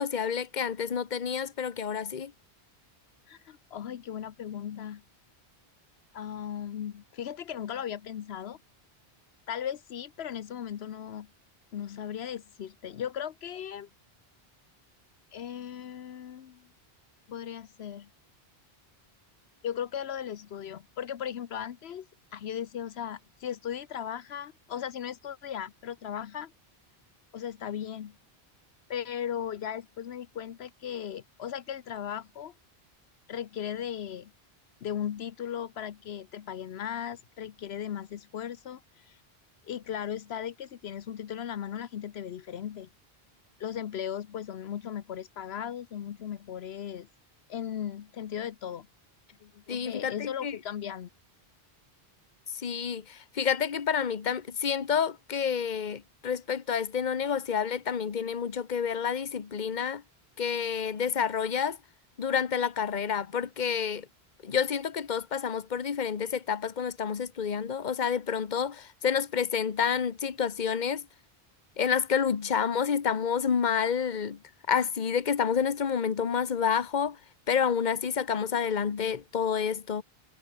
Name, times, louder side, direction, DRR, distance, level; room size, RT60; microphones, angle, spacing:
voice 1, 0.0-2.3 49.7-50.6 52.6-60.0 60.4-61.8 62.2-64.1 64.4-71.1 71.8-74.4 74.7-77.2 77.5-80.0, left 7 dB, 45° left, 1.1 m, -29 dB
voice 2, 3.3-5.0 6.1-8.6 9.5-11.3 11.7-13.9 15.3-16.7 17.3-18.1 19.6-22.1 22.3-26.5 27.3-28.2 28.9-32.5 33.3-34.3 34.8-39.2 39.6-42.9 43.6-47.1 47.5-48.9 49.4-51.1, left 9 dB, 80° left, 1.0 m, -37 dB
omnidirectional pair, 1.0 m